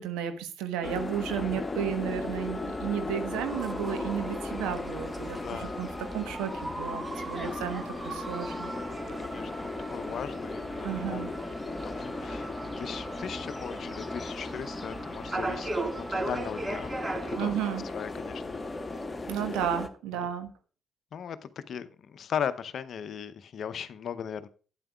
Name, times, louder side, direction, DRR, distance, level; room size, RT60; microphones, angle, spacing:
voice 1, 0.0-8.7 10.8-11.3 17.4-17.8 19.3-20.5, right 9 dB, 70° right, 1.2 m, -33 dB
sound 1, 0.8-19.9, left 2 dB, 25° left, 1.2 m, -37 dB
sound 2, 3.3-17.4, right 2 dB, 25° right, 1.8 m, -39 dB
voice 2, 5.4-5.8 9.2-11.3 11.7-17.5 17.9-18.7 21.1-24.5, left 8 dB, 55° left, 0.7 m, -38 dB
12.0 x 8.9 x 2.4 m
hypercardioid pair, 45°, 0 cm